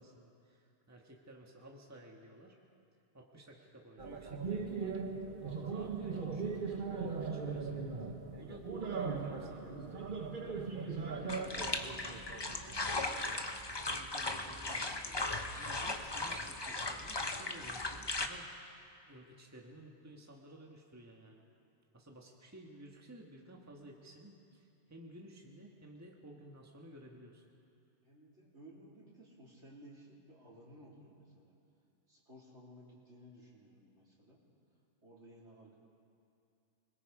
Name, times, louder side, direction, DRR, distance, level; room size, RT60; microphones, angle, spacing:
voice 1, 0.0-2.6 3.1-5.0 5.6-7.8 8.3-10.0 10.3-18.5 19.0-21.4 21.9-27.4, right 1 dB, 15° right, 0 dB, 1.6 m, -55 dB
sound 1, 4.0-12.8, right 5 dB, 45° right, 1.3 m, -39 dB
sound 2, 11.3-18.3, left 2 dB, 25° left, 0.9 m, -38 dB
voice 2, 28.0-31.5 32.1-34.4 35.0-35.7, equal, 65° right, -5 dB, 3.9 m, -57 dB
25.5 x 21.0 x 4.9 m, 2.5 s
omnidirectional pair, 1.3 m